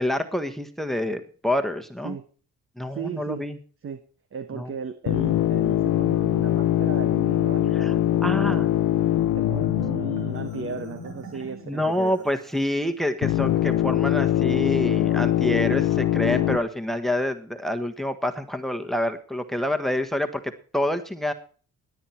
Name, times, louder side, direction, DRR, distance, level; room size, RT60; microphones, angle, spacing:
voice 1, 0.0-2.2 2.8-3.6 4.6-4.7 7.8-7.9 8.2-8.7 11.7-21.3, left 1 dB, ahead, 10 dB, 1.4 m, -27 dB
voice 2, 2.9-3.5 3.8-4.0 4.3-8.7 9.3-12.1, right 6 dB, 45° right, 11 dB, 1.2 m, -36 dB
sound 1, 5.1-11.4 13.2-16.6, left 13 dB, 85° left, 0.8 m, -23 dB
Marimba xylophone, 9.5-12.8, right 5 dB, 80° right, 3.3 m, -46 dB
18.0 x 9.2 x 4.4 m, 0.42 s
cardioid pair, 90°, 30 cm